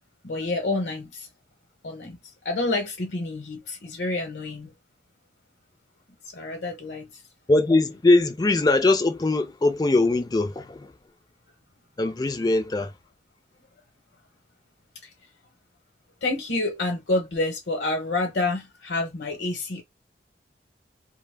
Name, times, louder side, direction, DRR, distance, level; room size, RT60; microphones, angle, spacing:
voice 1, 0.2-1.3 1.8-2.2 2.4-4.7 6.3-7.1 15.0-15.1 16.2-19.8, left 2 dB, 75° left, 0.8 m, -28 dB
voice 2, 7.5-10.9 12.0-12.9, left 2 dB, 20° left, 0.4 m, -21 dB
2.1 x 2.0 x 3.2 m
head